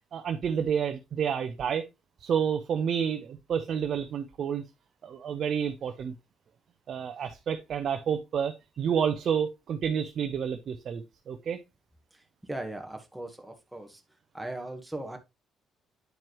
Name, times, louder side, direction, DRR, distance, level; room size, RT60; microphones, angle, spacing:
voice 1, 0.1-1.9 2.2-4.6 5.0-6.2 6.9-11.6, right 7 dB, 60° right, 0.7 m, -29 dB
voice 2, 12.5-14.0 14.3-15.2, right 1 dB, 5° right, 1.4 m, -38 dB
9.3 x 4.5 x 3.1 m
supercardioid pair, 70°, 0 cm